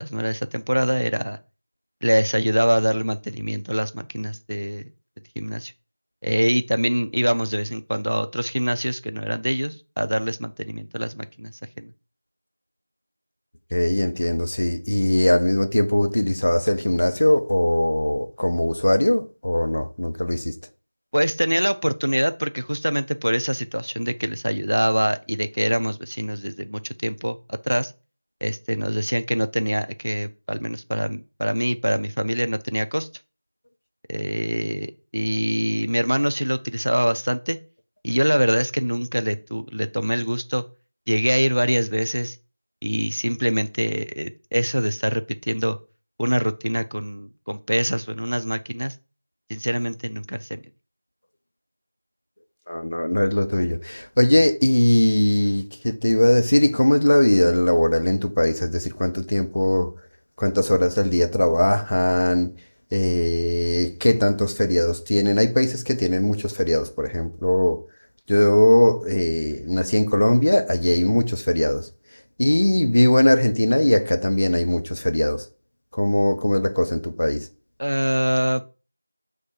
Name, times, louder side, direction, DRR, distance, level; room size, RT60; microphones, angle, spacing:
voice 1, 0.0-1.4 2.0-4.9 5.4-5.7 6.2-11.9 21.1-27.9 28.4-33.1 34.1-37.6 38.0-40.7 41.1-42.4 42.8-45.8 46.2-49.0 49.5-50.6 77.8-78.6, equal, 75° right, 0.4 m, -24 dB
voice 2, 13.7-20.6 52.7-59.9 60.4-62.5 62.9-67.8 68.3-71.9 72.4-75.5 75.9-77.5, left 1 dB, 40° left, 0.4 m, -20 dB
5.0 x 2.0 x 3.9 m
figure-of-eight pair, 175°, 0 cm